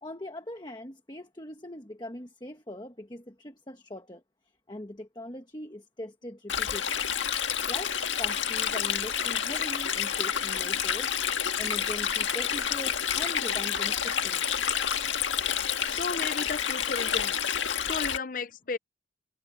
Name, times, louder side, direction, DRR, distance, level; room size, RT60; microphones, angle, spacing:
voice 1, 0.0-4.2 4.7-7.1 7.7-11.1 11.6-14.7, left 1 dB, 25° left, 1.3 m, -41 dB
Stream, 6.5-18.2, left 8 dB, 85° left, 1.7 m, -29 dB
voice 2, 15.8-17.6 17.9-18.8, left 4 dB, 45° left, 0.6 m, -34 dB
head